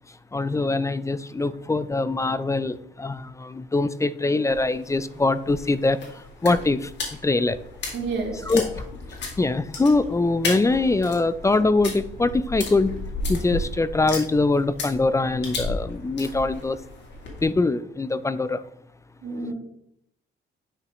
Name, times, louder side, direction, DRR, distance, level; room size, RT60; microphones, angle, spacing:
voice 1, 0.3-6.0 6.4-6.9 7.2-7.6 8.5-8.8 9.4-12.9 13.3-16.8 17.4-18.6, left 3 dB, 15° left, 15 dB, 0.4 m, -23 dB
sound 1, 4.5-17.5, left 3 dB, 65° left, 2.3 m, -34 dB
voice 2, 7.9-8.4 19.2-19.5, right 4 dB, 65° right, -3 dB, 2.4 m, -29 dB
9.4 x 5.5 x 3.1 m, 0.74 s
cardioid pair, 90°, 20 cm